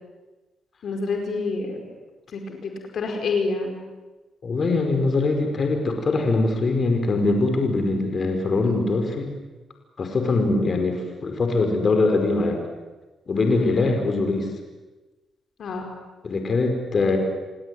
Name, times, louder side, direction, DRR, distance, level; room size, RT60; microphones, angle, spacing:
voice 1, 0.8-1.8 2.3-3.8 13.4-13.9 15.6-15.9, left 3 dB, 65° left, 3 dB, 5.0 m, -28 dB
voice 2, 4.4-9.3 10.0-12.6 13.3-14.5 16.2-17.2, left 3 dB, 45° left, 5 dB, 5.1 m, -22 dB
29.5 x 17.0 x 9.7 m, 1.2 s
cardioid pair, 75°, 0 cm